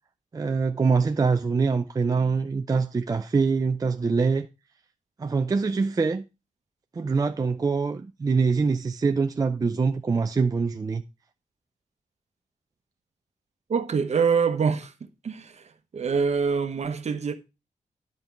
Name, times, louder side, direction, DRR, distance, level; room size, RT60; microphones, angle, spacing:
voice 1, 0.3-4.5 5.2-6.2 6.9-11.0, right 4 dB, 25° right, 0.5 m, -24 dB
voice 2, 13.7-14.9 15.2-17.3, right 5 dB, 55° right, 1.0 m, -25 dB
10.5 x 5.4 x 4.4 m
wide cardioid pair, 160°, 13 cm